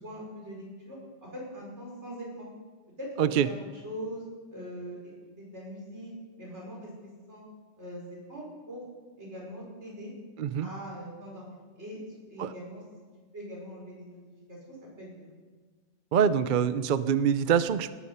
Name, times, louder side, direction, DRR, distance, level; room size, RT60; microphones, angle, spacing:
voice 1, 0.0-2.5 3.0-3.5 3.8-5.1 5.4-6.1 6.4-6.9 7.3-7.4 7.8-8.9 9.2-10.1 10.6-12.0 12.3-12.8 13.3-14.2 14.5-15.3, equal, 70° right, -3 dB, 5.9 m, -42 dB
voice 2, 10.4-10.7 12.4-12.5 16.1-17.9, right 8 dB, 50° right, 13 dB, 0.7 m, -25 dB
18.0 x 13.5 x 5.6 m, 1.4 s
omnidirectional pair, 1.2 m